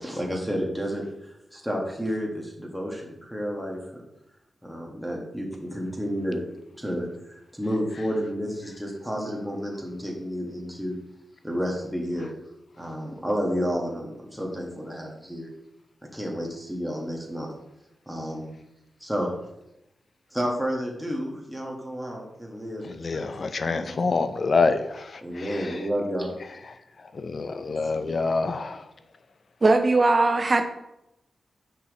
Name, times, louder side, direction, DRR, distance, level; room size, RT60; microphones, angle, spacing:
voice 1, 0.0-4.0 4.6-6.4 6.8-11.0 11.4-12.3 12.8-15.5 16.1-17.5 18.1-18.5 19.0-19.3 20.3-22.8 23.1-24.0 25.2-26.3, equal, 5° right, 1.7 m, -31 dB
voice 2, 22.8-25.8 27.1-28.9, left 4 dB, 55° left, 0.5 m, -27 dB
voice 3, 29.6-30.7, right 2 dB, 40° right, 0.6 m, -19 dB
6.0 x 5.7 x 3.2 m
cardioid pair, 75°, 0 cm